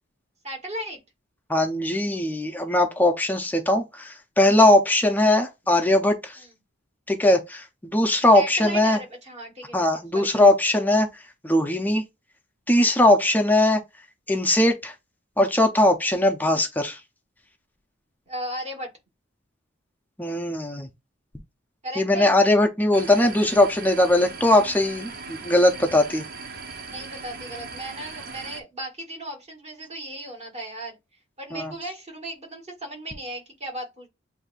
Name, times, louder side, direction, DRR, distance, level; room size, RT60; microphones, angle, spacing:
voice 1, 0.4-1.0 6.4-6.5 8.3-10.3 16.1-16.2 18.3-18.9 21.8-22.3 26.8-31.0 31.4-34.1, right 1 dB, 35° right, 1.8 m, -36 dB
voice 2, 1.5-6.4 7.1-9.0 9.7-11.1 11.4-12.0 12.7-13.8 14.3-14.9 15.4-17.0 20.2-20.9 22.0-26.2 31.5-31.7, left 1 dB, 10° left, 0.5 m, -20 dB
sound 1, 22.9-28.6, right 4 dB, 50° right, 0.6 m, -39 dB
7.8 x 2.6 x 2.4 m
head